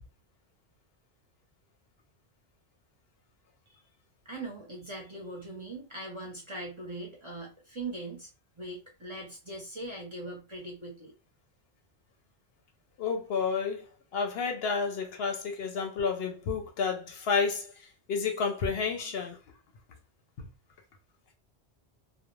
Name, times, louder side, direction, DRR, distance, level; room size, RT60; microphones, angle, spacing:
voice 1, 4.2-8.3 8.6-11.1, right 2 dB, 35° right, 0.6 m, -41 dB
voice 2, 13.0-13.9 14.1-17.7 18.1-19.4, left 5 dB, 70° left, 0.8 m, -30 dB
2.4 x 2.0 x 3.0 m
omnidirectional pair, 1.1 m